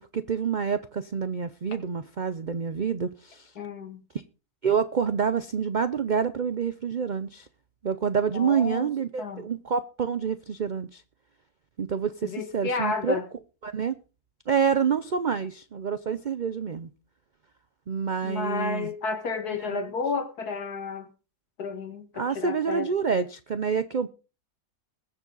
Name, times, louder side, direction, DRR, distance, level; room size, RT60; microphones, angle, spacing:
voice 1, 0.1-3.5 4.6-7.5 7.8-11.0 11.8-13.2 13.6-13.9 14.5-16.9 17.9-18.9 19.7-19.9 22.1-24.1, right 6 dB, 60° right, 0.4 m, -27 dB
voice 2, 3.6-4.0 8.3-8.9 9.2-9.4 12.2-13.2 18.2-21.1 21.6-22.9, left 4 dB, 75° left, 2.3 m, -31 dB
21.0 x 7.4 x 3.9 m
omnidirectional pair, 1.7 m